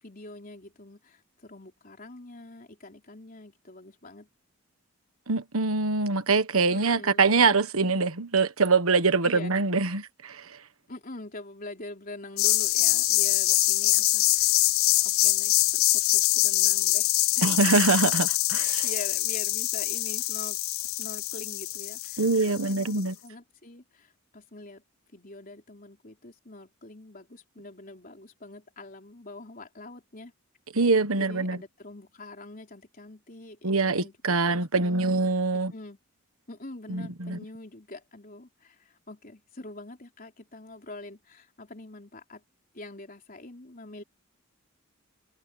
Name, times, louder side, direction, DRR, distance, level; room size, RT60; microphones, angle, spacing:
voice 1, 0.0-4.3 6.7-7.3 9.2-9.5 9.9-10.0 10.9-14.6 15.0-17.1 17.4-17.6 18.8-20.6 21.0-24.8 25.1-30.3 31.2-35.1 35.5-36.0 36.5-42.4 42.7-44.0, left 2 dB, 40° left, 4.0 m, -45 dB
voice 2, 5.3-10.4 17.4-18.9 22.2-23.1 30.7-31.6 33.6-35.7 36.9-37.4, right 3 dB, 70° right, 1.4 m, -24 dB
sound 1, 12.4-22.9, left 19 dB, 65° left, 0.4 m, -24 dB
head